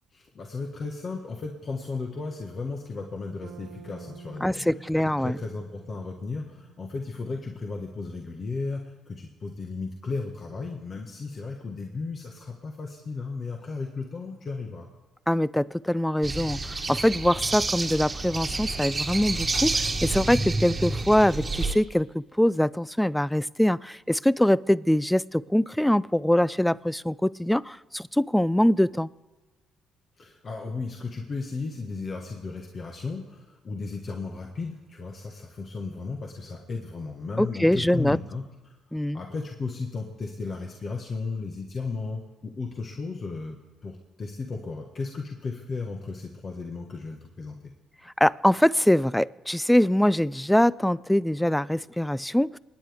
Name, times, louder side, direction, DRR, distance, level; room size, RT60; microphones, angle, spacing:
voice 1, 0.1-4.6 5.2-14.9 30.2-47.7, left 4 dB, 45° left, 2 dB, 1.5 m, -35 dB
Bass guitar, 3.4-7.5, right 6 dB, 75° right, 1.2 m, -49 dB
voice 2, 4.4-5.4 15.3-29.1 37.4-38.2 38.9-39.2 48.2-52.6, left 1 dB, 5° left, 21 dB, 0.4 m, -23 dB
sound 1, 16.2-21.7, right 3 dB, 30° right, 1.5 m, -29 dB
28.5 x 9.6 x 3.5 m, 1.3 s
supercardioid pair, 75°, 0 cm